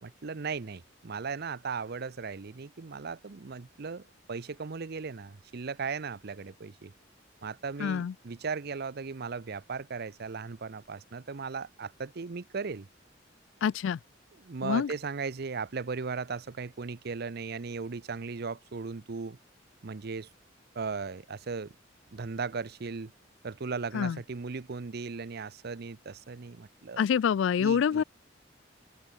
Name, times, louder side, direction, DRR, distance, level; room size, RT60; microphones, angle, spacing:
voice 1, 0.0-6.9 7.4-12.9 14.4-19.4 19.8-20.3 20.7-21.7 22.1-23.1 23.4-27.0 27.6-28.0, right 5 dB, 55° right, 0.6 m, -37 dB
voice 2, 7.8-8.1 13.6-14.0 14.6-14.9 23.9-24.2 27.0-28.0, left 7 dB, 70° left, 0.3 m, -26 dB
open air
head